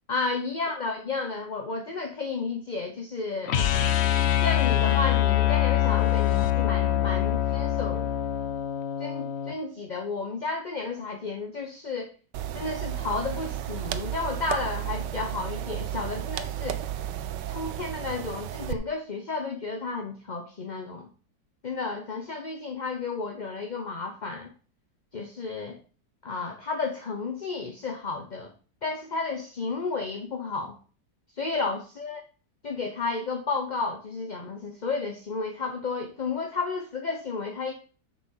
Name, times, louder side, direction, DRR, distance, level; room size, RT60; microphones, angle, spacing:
voice 1, 0.1-3.6 4.4-8.1 9.0-12.1 12.5-16.8 17.5-21.1 21.6-24.5 25.1-25.8 26.2-28.5 28.8-30.8 31.4-32.2 32.6-37.7, left 4 dB, 35° left, 3 dB, 0.9 m, -32 dB
sound 1, 3.5-9.6, left 12 dB, 60° left, 0.7 m, -24 dB
sound 2, 12.3-18.7, right 11 dB, 90° right, 1.3 m, -33 dB
7.1 x 6.8 x 5.6 m, 0.38 s
omnidirectional pair, 1.8 m